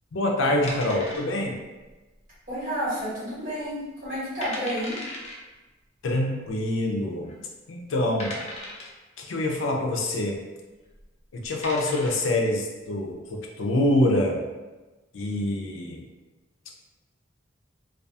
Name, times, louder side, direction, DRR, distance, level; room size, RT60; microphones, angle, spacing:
voice 1, 0.1-1.6 6.0-7.3 7.7-8.4 9.2-10.4 11.3-14.4 15.1-16.0, left 1 dB, 90° left, 1 dB, 0.5 m, -25 dB
sound 1, 0.7-1.6 1.9-2.0 2.6-3.0 3.4-3.5 4.0-4.1 4.4-5.4 6.5-6.6 7.2-7.3 8.2-9.0 10.8-11.0 11.4-12.3, left 1 dB, 35° left, 0.5 m, -37 dB
voice 2, 2.5-5.0, equal, 45° right, -10 dB, 1.3 m, -30 dB
2.3 x 2.3 x 2.6 m, 1.2 s
head